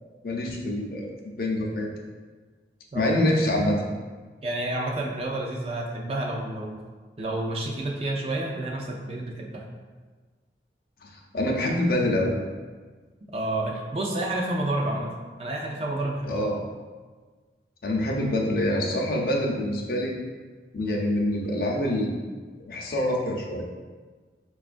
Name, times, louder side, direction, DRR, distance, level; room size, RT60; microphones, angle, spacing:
voice 1, 0.2-1.1 1.4-1.9 2.9-3.8 11.0-12.3 16.2-16.6 17.8-20.1 20.7-22.2 22.7-23.6, left 1 dB, 55° left, -1 dB, 0.5 m, -25 dB
voice 2, 4.4-6.7 7.2-9.6 13.3-15.1 15.4-16.4, right 1 dB, 35° right, -1 dB, 0.4 m, -29 dB
5.0 x 2.3 x 2.4 m, 1.4 s
head